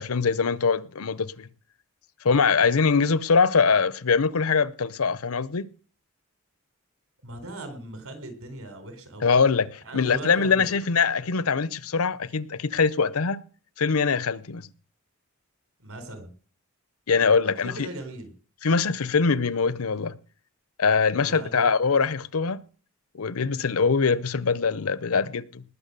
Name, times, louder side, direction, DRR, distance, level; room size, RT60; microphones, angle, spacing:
voice 1, 0.0-1.5 2.2-5.6 9.2-13.4 13.8-14.6 17.1-17.9 18.6-20.2 20.8-22.6 23.1-25.6, left 5 dB, 80° left, 0.7 m, -23 dB
voice 2, 7.2-9.3 9.8-10.7 15.8-16.3 17.4-18.3 21.2-21.7, right 2 dB, 75° right, 4.0 m, -39 dB
19.5 x 7.2 x 6.7 m
head